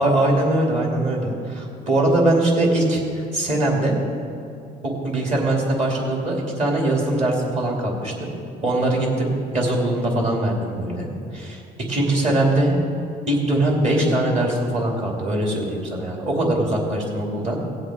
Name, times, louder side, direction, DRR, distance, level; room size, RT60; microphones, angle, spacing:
voice 1, 0.0-4.0 4.8-8.3 8.6-11.1 11.3-12.8 13.3-17.6, right 1 dB, 40° right, -1 dB, 2.9 m, -21 dB
18.0 x 7.8 x 3.9 m, 2.7 s
cardioid pair, 110°, 17 cm